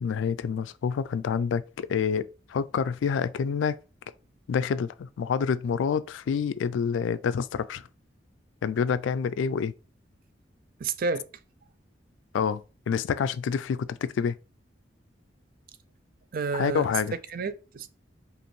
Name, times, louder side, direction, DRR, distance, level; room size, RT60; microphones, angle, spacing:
voice 1, 0.0-3.8 4.5-7.9 8.6-9.7 12.3-12.6 12.9-14.4 16.5-17.1, left 6 dB, 80° left, 0.3 m, -27 dB
voice 2, 10.8-11.3 16.3-16.9 17.3-17.9, right 4 dB, 50° right, 0.4 m, -30 dB
5.1 x 2.5 x 3.1 m
head